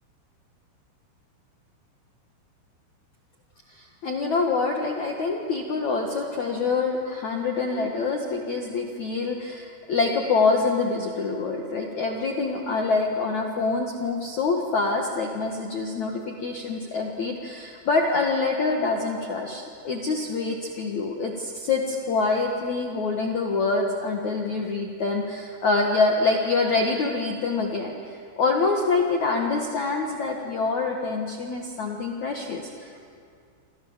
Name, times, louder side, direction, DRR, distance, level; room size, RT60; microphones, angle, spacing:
voice 1, 3.7-33.0, left 3 dB, 55° left, 1 dB, 2.2 m, -26 dB
29.5 x 26.5 x 7.4 m, 2.3 s
omnidirectional pair, 5.5 m